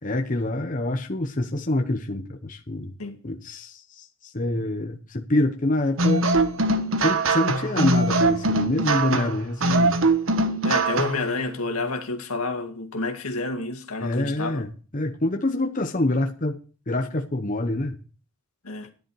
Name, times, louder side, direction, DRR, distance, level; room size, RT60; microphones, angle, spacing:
voice 1, 0.0-2.9 3.2-6.2 7.0-10.0 14.0-16.6 16.9-17.9, left 1 dB, 35° left, 1.1 m, -26 dB
sound 1, 6.0-11.3, right 2 dB, 65° right, 1.3 m, -22 dB
voice 2, 10.6-14.6 18.6-18.9, left 3 dB, 85° left, 2.1 m, -29 dB
13.5 x 10.5 x 4.8 m
head